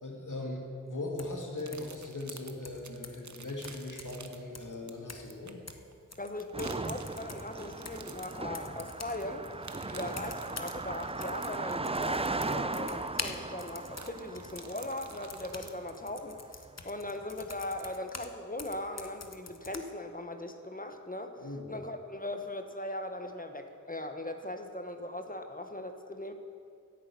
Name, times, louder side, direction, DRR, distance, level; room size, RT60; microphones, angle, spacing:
voice 1, 0.0-5.6 9.9-10.1 21.4-21.7, left 2 dB, 75° left, -1 dB, 2.2 m, -39 dB
sound 1, 1.2-1.4 1.7-2.0 2.6-3.3 3.6-4.3 4.5-4.7 5.1-5.4 5.7-6.8 7.1-9.2 10.1-10.8 11.1-18.3 18.6-19.8, left 4 dB, 55° left, 0.9 m, -45 dB
sound 2, 1.6-15.7, right 4 dB, 65° right, 0.8 m, -52 dB
voice 2, 6.2-9.4 9.9-26.3, left 1 dB, 25° left, 6 dB, 1.0 m, -39 dB
Car passing by, 6.5-16.1, right 3 dB, 20° right, 0.4 m, -37 dB
10.5 x 8.7 x 8.4 m, 2.3 s
wide cardioid pair, 55°, 31 cm